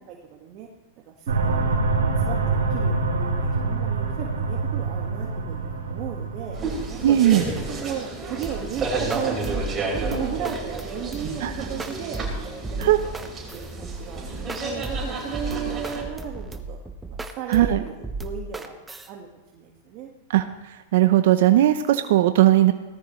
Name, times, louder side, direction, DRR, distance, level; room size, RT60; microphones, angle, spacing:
voice 1, 0.1-0.7 1.1-6.6 7.1-7.4 7.7-12.2 12.7-13.1 13.5-14.2 14.6-16.8 17.1-17.9 18.2-18.7 19.1-19.3 19.5-20.1, right 9 dB, 45° right, 0 dB, 1.8 m, -35 dB
sound 1, 1.3-7.6, right 3 dB, 85° right, 3.0 m, -26 dB
sound 2, 6.5-16.0, right 3 dB, 25° right, 5.1 m, -31 dB
voice 2, 7.0-7.4 11.4-11.5 12.8-13.0 17.5-17.8 20.3-20.4 20.9-22.7, right 13 dB, 70° right, 9 dB, 0.8 m, -18 dB
sound 3, 8.4-19.1, right 2 dB, 10° right, 1.1 m, -34 dB
18.5 x 13.0 x 3.2 m, 1.2 s
hypercardioid pair, 120°, 0 cm